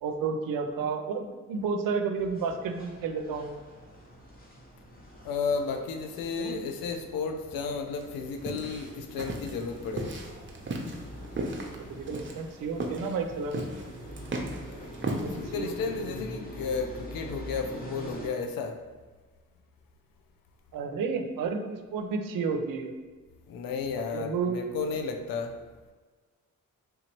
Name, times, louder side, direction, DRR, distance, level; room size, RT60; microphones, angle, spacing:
voice 1, 0.0-3.6 6.4-6.6 11.9-13.7 15.2-15.7 20.7-22.9 24.1-24.6, right 5 dB, 75° right, 5 dB, 0.5 m, -31 dB
sound 1, 2.1-18.3, equal, 25° left, 0.9 m, -45 dB
voice 2, 5.2-10.2 14.7-15.0 15.3-18.8 23.5-25.6, left 5 dB, 85° left, 5 dB, 0.5 m, -33 dB
sound 2, 8.0-15.8, right 2 dB, 35° right, 0.6 m, -37 dB
3.5 x 2.9 x 2.9 m, 1.4 s
cardioid pair, 55°, 34 cm